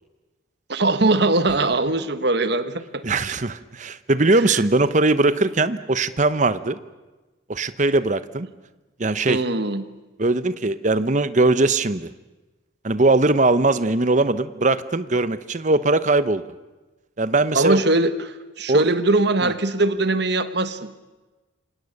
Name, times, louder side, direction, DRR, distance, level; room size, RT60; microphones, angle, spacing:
voice 1, 0.7-3.0 9.3-9.8 17.5-20.9, right 2 dB, 55° right, 11 dB, 1.4 m, -21 dB
voice 2, 3.0-6.8 7.5-8.5 9.0-9.4 10.2-12.1 12.8-16.4 17.2-17.8 18.7-18.9 19.4-19.5, right 2 dB, 40° right, 13 dB, 0.9 m, -20 dB
28.0 x 25.5 x 6.6 m, 1.2 s
head